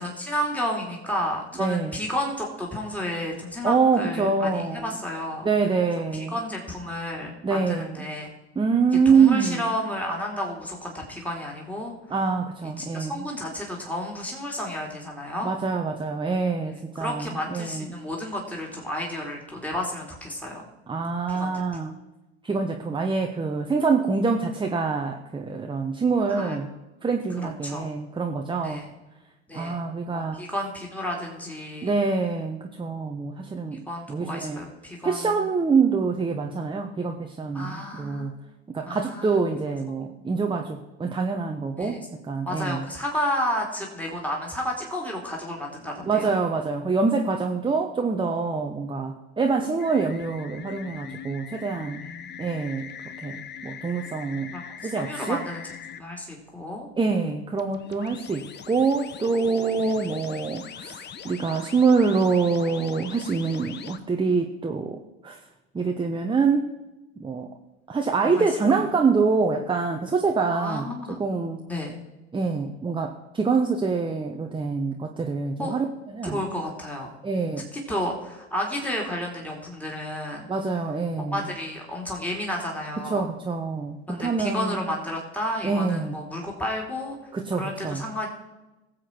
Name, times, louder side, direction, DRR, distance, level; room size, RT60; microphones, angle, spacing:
voice 1, 0.0-5.5 6.1-8.3 9.0-11.9 12.8-15.5 17.0-20.7 21.3-21.6 26.3-26.6 27.4-27.9 28.6-28.8 29.5-29.8 30.1-32.0 33.9-35.3 37.5-38.3 38.8-39.4 40.2-40.3 41.8-42.1 42.4-46.3 52.0-52.4 54.5-56.9 59.8-59.9 68.2-68.5 70.5-71.2 71.7-72.0 75.6-75.7 76.2-77.1 77.7-80.5 81.2-83.3 84.1-87.2 87.5-88.3, left 1 dB, 5° left, -1 dB, 3.0 m, -32 dB
voice 2, 1.6-2.0 3.6-5.0 5.4-6.4 7.4-8.1 8.5-9.6 12.1-13.3 15.4-18.0 20.9-22.0 22.4-26.7 27.0-28.9 29.5-30.4 31.8-34.6 35.0-38.3 38.7-42.8 46.0-52.0 52.4-52.9 53.2-54.6 54.8-55.4 57.0-65.4 65.7-66.7 67.2-67.5 67.9-70.9 71.2-71.6 72.3-76.4 77.2-77.7 80.5-81.5 83.0-84.9 85.6-86.1 87.3-88.1, right 4 dB, 15° right, 3 dB, 1.0 m, -25 dB
sound 1, 49.8-56.0 57.5-64.0, left 8 dB, 30° left, 0.9 m, -41 dB
18.5 x 7.6 x 4.6 m, 1.0 s
hypercardioid pair, 80°, 35 cm